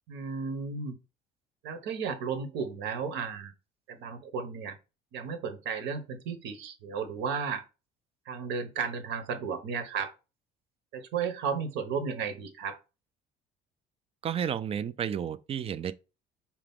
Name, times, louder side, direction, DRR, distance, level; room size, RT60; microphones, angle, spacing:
voice 1, 0.1-1.0 1.6-3.5 3.9-4.8 5.1-7.6 8.3-10.1 10.9-12.8, right 6 dB, 75° right, 1.0 m, -34 dB
voice 2, 14.2-15.9, right 8 dB, 30° right, 0.4 m, -32 dB
4.9 x 2.9 x 3.6 m
cardioid pair, 115°, 18 cm